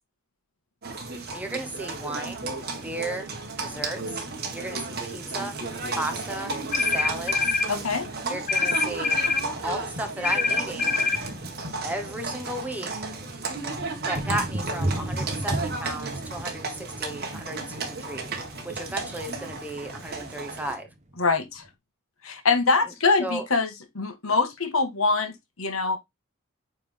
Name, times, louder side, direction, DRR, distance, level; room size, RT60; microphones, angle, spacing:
Livestock farm animals working animals, 0.8-20.7, right 3 dB, 50° right, 1.9 m, -34 dB
voice 1, 1.1-2.5 2.8-3.3 3.6-4.0 4.5-5.6 5.9-6.5 6.9-7.4 8.3-9.2 9.6-10.9 11.8-12.9 14.1-18.3 18.6-20.9 23.2-23.4, right 1 dB, 5° right, 1.2 m, -34 dB
sound 1, 5.9-7.5 8.8-8.9 9.1-9.3 9.6-21.7, right 1 dB, 35° right, 1.0 m, -37 dB
sound 2, 6.7-7.7 8.5-9.5 10.2-11.2, left 4 dB, 40° left, 1.0 m, -24 dB
voice 2, 7.7-8.1 21.2-21.6 22.2-23.7 23.9-26.0, left 4 dB, 75° left, 1.5 m, -24 dB
8.7 x 3.7 x 3.5 m
head